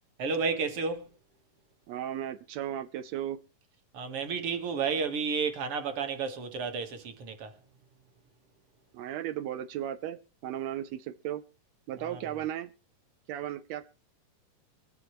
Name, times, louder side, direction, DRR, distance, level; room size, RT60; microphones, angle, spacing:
voice 1, 0.2-1.1 3.9-7.5 12.0-12.2, right 5 dB, 50° right, 2.0 m, -32 dB
voice 2, 1.9-3.4 8.9-11.4 11.9-12.7 13.3-13.9, right 11 dB, 85° right, 1.5 m, -35 dB
24.0 x 9.8 x 3.1 m
omnidirectional pair, 4.0 m